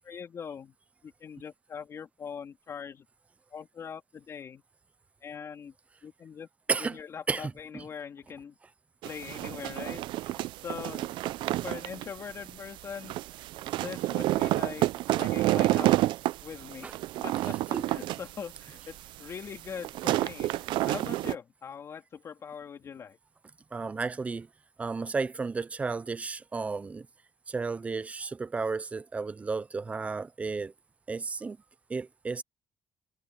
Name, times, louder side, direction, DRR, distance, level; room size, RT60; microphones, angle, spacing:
voice 1, 0.0-0.7 1.0-3.0 3.5-4.6 5.2-5.7 6.0-6.5 6.8-8.6 9.0-11.1 11.6-13.1 13.8-16.9 17.2-23.2, left 7 dB, 35° left, 3.4 m, -42 dB
voice 2, 7.3-7.8 16.8-16.9 17.7-17.9 23.7-24.5 24.8-27.1 27.5-30.7 31.1-31.6 31.9-32.4, right 4 dB, 15° right, 0.4 m, -33 dB
sound 1, 9.0-21.4, right 16 dB, 85° right, 0.4 m, -29 dB
cardioid pair, 180°, 8 cm